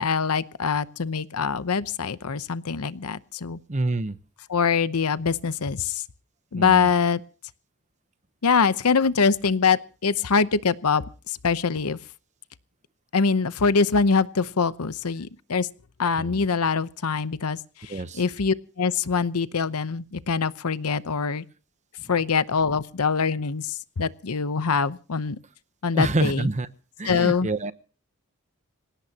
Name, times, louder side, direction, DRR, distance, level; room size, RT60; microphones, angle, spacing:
voice 1, 0.0-3.6 4.5-6.0 6.5-7.2 8.4-12.0 13.1-15.7 16.0-21.4 22.1-25.4 25.8-26.5 27.0-27.5, left 5 dB, 75° left, 14 dB, 0.8 m, -24 dB
voice 2, 3.7-4.2 6.5-6.9 16.2-16.5 17.9-18.2 25.9-26.7 27.0-27.7, right 2 dB, 30° right, 13 dB, 0.9 m, -27 dB
26.5 x 17.0 x 2.9 m, 0.37 s
head